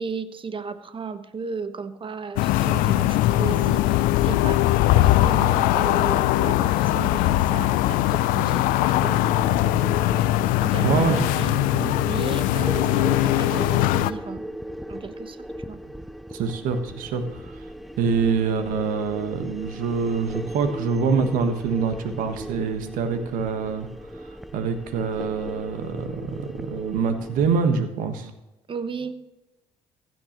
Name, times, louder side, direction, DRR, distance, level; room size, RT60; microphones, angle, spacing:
voice 1, 0.0-4.6 4.9-9.4 10.5-11.7 12.0-14.4 14.9-15.8 28.7-29.1, right 5 dB, 35° right, 11 dB, 1.1 m, -34 dB
sound 1, 2.4-14.1, left 15 dB, 70° left, 0.4 m, -21 dB
sound 2, 8.7-27.7, equal, ahead, 0.6 m, -37 dB
voice 2, 10.8-11.2 11.7-11.9 16.3-17.4 18.0-23.9 24.5-28.3, right 5 dB, 70° right, 8 dB, 1.3 m, -25 dB
15.5 x 9.3 x 3.0 m, 1.0 s
hypercardioid pair, 50°, 14 cm